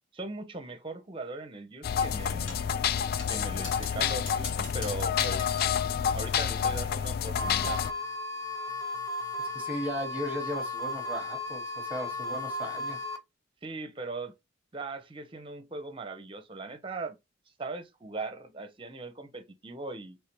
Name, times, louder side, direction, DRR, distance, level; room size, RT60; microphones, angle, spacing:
voice 1, 0.1-2.6 3.3-5.5 6.1-7.8 13.6-14.3 14.7-17.2 17.6-20.2, right 3 dB, 25° right, 0.7 m, -39 dB
sound 1, 1.8-7.9, left 8 dB, 50° left, 0.3 m, -29 dB
sound 2, 2.5-2.7 3.2-5.8, left 3 dB, 75° left, 1.8 m, -43 dB
sound 3, 7.4-13.2, left 2 dB, 15° left, 0.6 m, -35 dB
voice 2, 9.5-13.0, equal, 10° right, 1.1 m, -36 dB
4.8 x 3.3 x 3.0 m
head